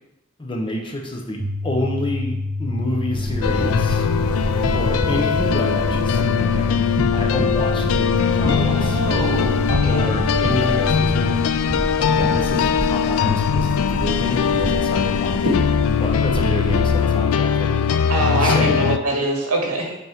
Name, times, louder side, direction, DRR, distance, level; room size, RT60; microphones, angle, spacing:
voice 1, 0.4-4.1 4.7-6.7 7.1-9.0 9.8-11.5 12.0-15.5 16.0-17.8 18.3-18.9, left 1 dB, 25° left, 1 dB, 0.9 m, -28 dB
sound 1, 1.4-11.4, left 3 dB, 25° right, 0.7 m, -27 dB
sound 2, 3.1-17.1, equal, 55° right, 1.8 m, -27 dB
sound 3, 3.4-19.0, left 7 dB, 70° left, 0.3 m, -21 dB
voice 2, 8.5-10.1 18.1-20.0, right 1 dB, 75° right, 0 dB, 1.6 m, -24 dB
8.0 x 4.2 x 3.6 m, 0.88 s
head